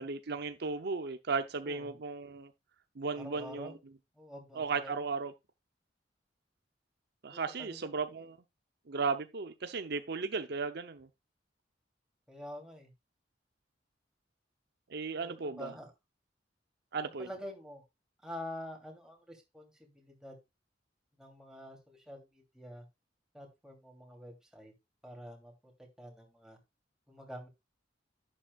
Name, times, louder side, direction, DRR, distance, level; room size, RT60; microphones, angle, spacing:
voice 1, 0.0-2.5 3.0-3.7 4.5-5.3 7.2-8.4 8.9-11.1 14.9-15.7 16.9-17.3, right 4 dB, 65° right, 0.7 m, -35 dB
voice 2, 3.2-3.8 4.1-4.9 7.3-8.2 12.3-12.9 15.2-15.9 17.2-17.8 18.2-20.4 21.2-22.8 23.3-24.7 25.0-25.7 26.0-26.6 27.1-27.5, left 1 dB, 5° right, 3.0 m, -47 dB
11.0 x 8.8 x 2.4 m
head